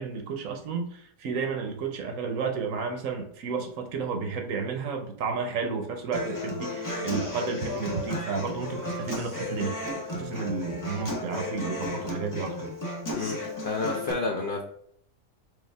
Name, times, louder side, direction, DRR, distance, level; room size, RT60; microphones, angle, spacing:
voice 1, 0.0-12.7, right 5 dB, 70° right, 4 dB, 1.1 m, -32 dB
Human voice / Acoustic guitar, 6.1-14.1, left 2 dB, 20° left, 0.6 m, -34 dB
voice 2, 13.2-14.6, left 3 dB, 60° left, 0 dB, 0.5 m, -30 dB
4.8 x 2.5 x 3.3 m, 0.66 s
omnidirectional pair, 1.5 m